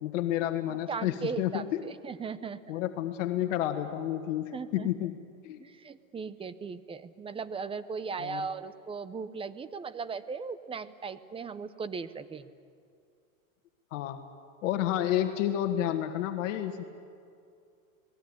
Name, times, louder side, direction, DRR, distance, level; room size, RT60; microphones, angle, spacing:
voice 1, 0.0-1.8 2.7-5.6 8.2-8.5 13.9-14.2 14.6-16.8, left 12 dB, 60° left, 6 dB, 1.8 m, -30 dB
voice 2, 0.7-2.8 4.5-4.9 5.6-12.5, right 5 dB, 15° right, 14 dB, 0.7 m, -38 dB
28.0 x 19.0 x 9.8 m, 2.4 s
supercardioid pair, 130°, 42 cm